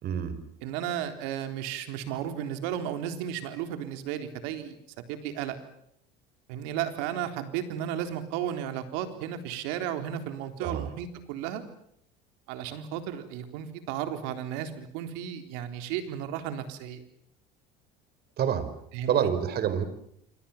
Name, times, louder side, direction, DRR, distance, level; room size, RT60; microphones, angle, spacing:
voice 1, 0.0-0.4 10.6-10.9 18.4-18.7 19.1-19.9, right 8 dB, 55° right, 13 dB, 4.8 m, -27 dB
voice 2, 0.6-5.6 6.5-11.6 12.5-17.0 18.9-19.3, right 10 dB, 80° right, 8 dB, 3.8 m, -34 dB
27.5 x 25.0 x 7.3 m, 0.71 s
supercardioid pair, 95°, 20 cm